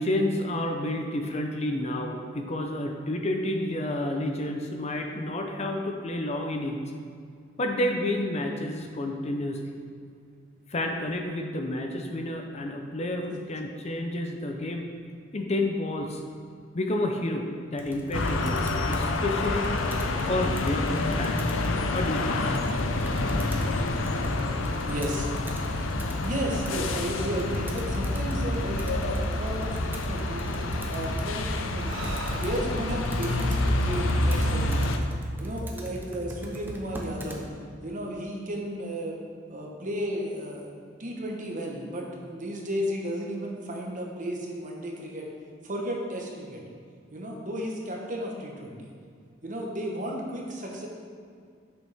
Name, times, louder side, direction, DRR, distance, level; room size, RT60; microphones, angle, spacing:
voice 1, 0.0-6.8 7.6-9.6 10.7-14.9 15.3-16.2 16.7-19.7 20.3-21.6 21.9-22.4, left 1 dB, 35° left, 3 dB, 0.6 m, -30 dB
Computer keyboard, 17.8-37.4, equal, 10° right, 0.7 m, -41 dB
sound 1, 18.1-35.0, left 2 dB, 90° left, 0.6 m, -28 dB
voice 2, 24.9-25.3 25.7-25.8 26.2-30.4 30.9-32.1 32.4-35.0 35.4-37.4 37.8-39.2 39.5-40.7 41.0-45.3 45.6-46.6 47.1-48.9 49.4-50.9, equal, 40° right, -1 dB, 1.1 m, -33 dB
Breathing, 31.7-35.3, right 1 dB, 80° right, 1.2 m, -41 dB
8.1 x 6.2 x 3.5 m, 2.2 s
head